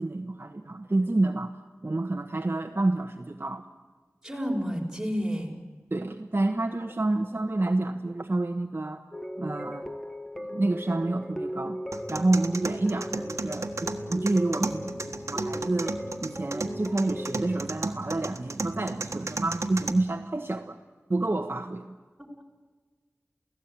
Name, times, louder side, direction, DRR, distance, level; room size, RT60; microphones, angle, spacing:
voice 1, 0.0-1.6 1.8-3.6 5.9-9.0 9.4-9.9 10.5-11.8 12.1-20.8 21.1-21.9, right 2 dB, 50° right, 5 dB, 1.2 m, -28 dB
voice 2, 4.2-5.6, equal, 10° right, 0 dB, 5.8 m, -30 dB
sound 1, 9.1-17.6, equal, 10° left, 1.8 m, -37 dB
sound 2, 11.9-19.9, right 3 dB, 90° right, 1.4 m, -35 dB
29.0 x 17.0 x 9.0 m, 1.4 s
wide cardioid pair, 50°, 5 cm